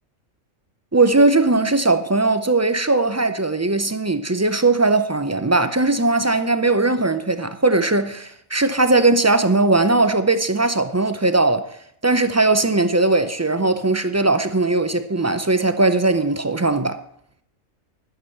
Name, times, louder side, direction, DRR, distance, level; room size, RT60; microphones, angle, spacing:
voice 1, 0.9-17.0, right 2 dB, 25° right, 0.3 m, -19 dB
11.5 x 7.0 x 7.8 m
omnidirectional pair, 1.4 m